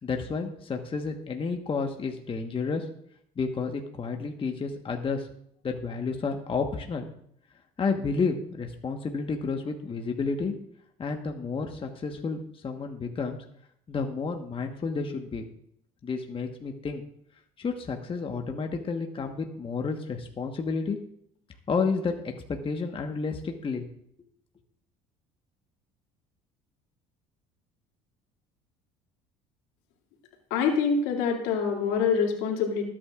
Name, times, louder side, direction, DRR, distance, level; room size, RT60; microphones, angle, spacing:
voice 1, 0.0-2.8 3.4-5.3 5.6-7.1 7.8-10.5 11.0-13.4 13.9-15.4 16.0-17.0 17.6-21.0 21.7-23.8, left 4 dB, 30° left, 3 dB, 1.3 m, -31 dB
voice 2, 30.5-32.9, left 6 dB, 75° left, 1 dB, 2.6 m, -25 dB
20.0 x 8.9 x 2.5 m, 0.70 s
supercardioid pair, 80°, 18 cm